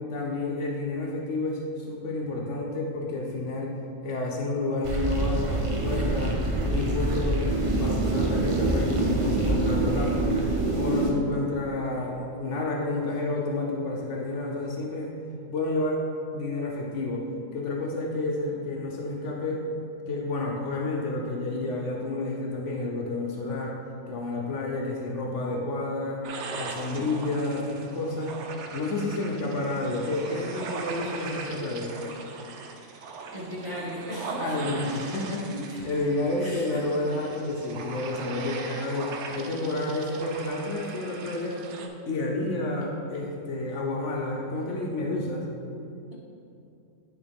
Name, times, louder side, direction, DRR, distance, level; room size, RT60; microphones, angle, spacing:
voice 1, 0.1-3.7 4.0-10.4 10.7-15.1 15.5-16.0 16.3-19.7 20.1-23.8 24.1-26.3 26.6-28.4 28.7-32.0 34.4-35.5 35.8-41.6 42.1-45.4, left 2 dB, 70° left, -1 dB, 1.0 m, -30 dB
sound 1, 4.8-11.1, right 2 dB, 35° right, 0.6 m, -25 dB
sound 2, 26.2-41.9, right 4 dB, 65° right, 0.8 m, -39 dB
voice 2, 33.3-34.6 35.5-35.8 36.4-36.8, equal, 15° right, -8 dB, 1.4 m, -36 dB
10.0 x 3.8 x 3.4 m, 2.6 s
omnidirectional pair, 1.4 m